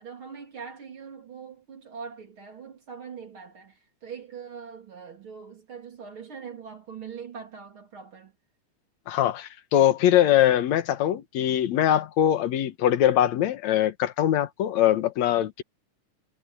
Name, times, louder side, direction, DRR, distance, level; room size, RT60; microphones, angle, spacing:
voice 1, 0.0-8.3, right 6 dB, 40° right, 3.7 m, -42 dB
voice 2, 9.1-15.6, left 11 dB, 70° left, 2.4 m, -22 dB
omnidirectional pair, 3.5 m